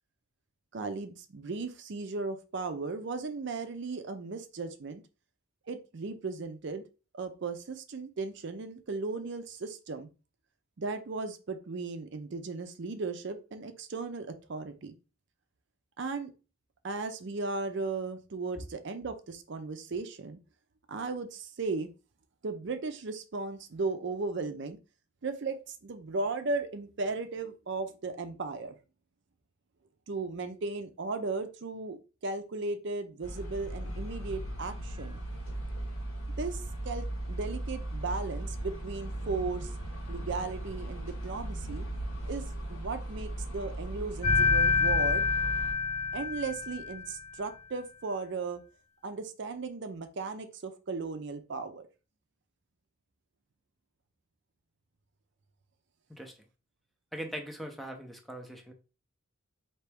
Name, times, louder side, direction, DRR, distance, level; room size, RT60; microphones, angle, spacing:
voice 1, 0.7-5.0 5.7-6.8 7.1-10.1 10.8-14.9 16.0-16.3 16.8-20.4 20.9-21.9 22.4-24.8 25.2-28.8 30.1-32.0 32.2-35.2 36.4-39.7 40.1-41.9 42.3-45.2 46.1-48.6 49.0-51.9, right 3 dB, 55° right, 8 dB, 0.5 m, -36 dB
sound 1, 33.2-45.7, right 1 dB, 90° left, 1.6 m, -37 dB
sound 2, 44.2-47.1, left 4 dB, 30° left, 0.8 m, -27 dB
voice 2, 57.1-58.7, equal, ahead, 3 dB, 0.5 m, -40 dB
4.4 x 2.9 x 3.4 m, 0.33 s
head